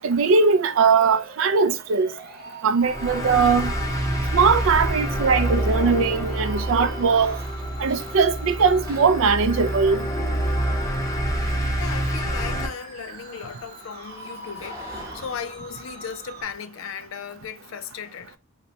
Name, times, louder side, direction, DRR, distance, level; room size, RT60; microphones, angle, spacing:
voice 1, 0.0-2.1 2.6-3.7 4.3-7.4 7.8-10.0, right 5 dB, 75° right, 0.4 m, -20 dB
sound 1, 0.9-16.4, right 2 dB, 45° right, 0.9 m, -43 dB
sound 2, 2.8-12.7, right 1 dB, 15° left, 0.6 m, -27 dB
voice 2, 3.1-3.7 11.8-18.4, left 7 dB, 75° left, 0.4 m, -37 dB
sound 3, 4.4-16.5, equal, 15° right, 0.9 m, -48 dB
4.1 x 2.1 x 2.7 m
head